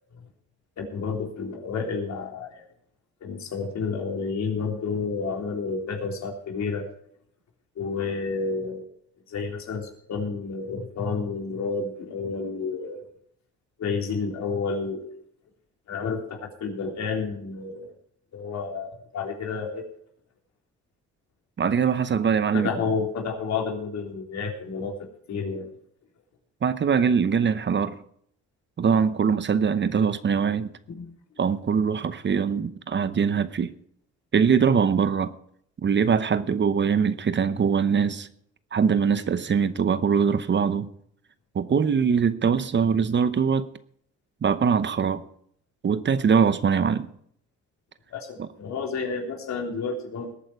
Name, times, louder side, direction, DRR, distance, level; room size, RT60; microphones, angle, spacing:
voice 1, 0.8-2.6 3.2-6.9 7.8-8.9 9.3-13.1 13.8-15.1 15.9-17.9 18.3-19.8 22.5-25.7 30.9-31.1 48.1-50.3, left 4 dB, 65° left, 1 dB, 3.7 m, -30 dB
voice 2, 21.6-22.7 26.6-28.0 28.8-30.7 31.4-33.7 34.3-35.3 35.8-38.3 38.7-40.9 41.5-43.7 44.4-45.2 45.8-47.1, right 6 dB, 40° right, 14 dB, 0.8 m, -22 dB
20.0 x 8.8 x 4.8 m, 0.66 s
cardioid pair, 90°, 30 cm